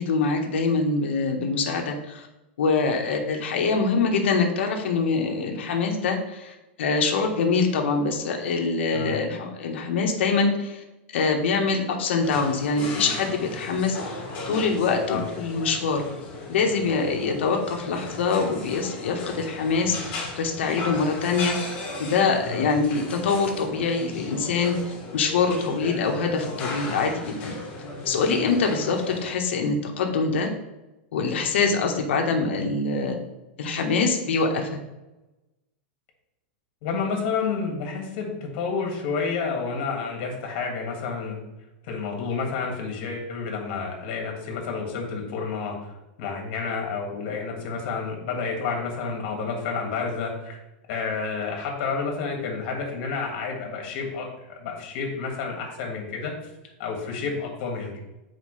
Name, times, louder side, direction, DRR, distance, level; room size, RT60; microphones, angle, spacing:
voice 1, 0.0-2.3 2.6-10.8 11.1-16.1 16.5-24.8 25.1-27.5 28.0-30.5 31.1-33.2 33.6-34.8, left 4 dB, 85° left, 2 dB, 1.2 m, -24 dB
sound 1, 12.2-29.3, left 2 dB, 30° left, 2.2 m, -36 dB
voice 2, 36.8-41.4 41.8-45.9 46.2-50.6 50.9-56.3 56.8-58.0, left 5 dB, 50° left, 1 dB, 1.9 m, -30 dB
7.5 x 4.8 x 3.2 m, 0.99 s
supercardioid pair, 160°, 6 cm